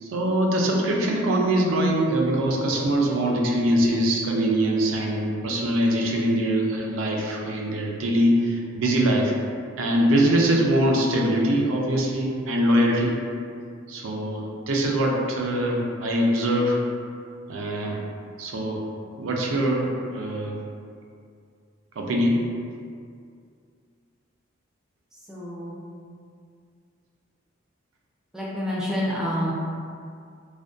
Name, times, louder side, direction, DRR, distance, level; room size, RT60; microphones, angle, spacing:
voice 1, 0.0-9.3 9.8-13.1 13.9-16.8 17.5-18.0 18.4-18.8 19.2-20.6 22.0-22.4, right 1 dB, 80° right, -1 dB, 0.4 m, -23 dB
voice 2, 25.3-25.8 28.3-29.5, equal, 5° right, -7 dB, 0.4 m, -28 dB
2.5 x 2.1 x 2.3 m, 2.3 s
head